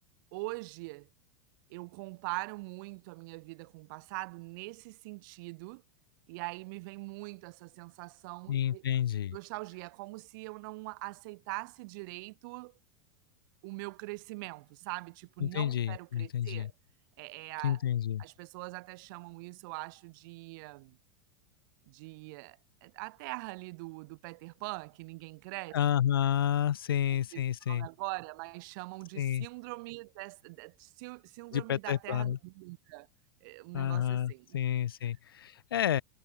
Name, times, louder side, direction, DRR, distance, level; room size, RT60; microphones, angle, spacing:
voice 1, 0.3-1.1 1.7-5.8 6.3-8.8 9.3-12.7 13.6-16.7 17.2-17.8 18.2-21.0 21.9-25.8 27.3-33.1 33.4-34.6, right 25 dB, 60° right, 3.2 m, -43 dB
voice 2, 8.5-9.3 15.4-16.7 17.6-18.2 25.7-27.9 29.2-29.5 31.5-32.4 33.7-36.0, left 10 dB, 85° left, 0.9 m, -30 dB
hypercardioid pair, 95°, 12 cm